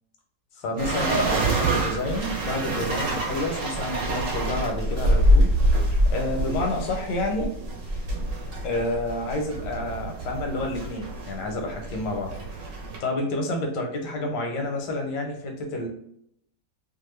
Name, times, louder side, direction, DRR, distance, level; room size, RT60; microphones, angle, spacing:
voice 1, 0.6-7.5 8.6-12.3 13.0-15.9, left 2 dB, 85° left, 2 dB, 1.4 m, -29 dB
sound 1, 0.8-13.0, right 1 dB, 60° right, 0.9 m, -26 dB
3.0 x 2.4 x 3.1 m, 0.70 s
omnidirectional pair, 1.9 m